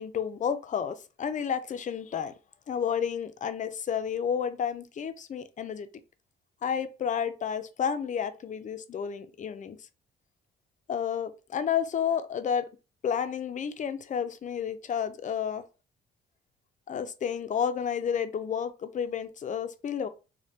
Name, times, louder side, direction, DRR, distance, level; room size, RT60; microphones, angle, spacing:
voice 1, 0.0-2.3 2.7-5.9 6.6-9.8 10.9-12.7 13.0-15.6 16.9-20.1, left 8 dB, 40° left, 0.4 m, -31 dB
3.1 x 2.1 x 2.7 m
cardioid pair, 90°, 20 cm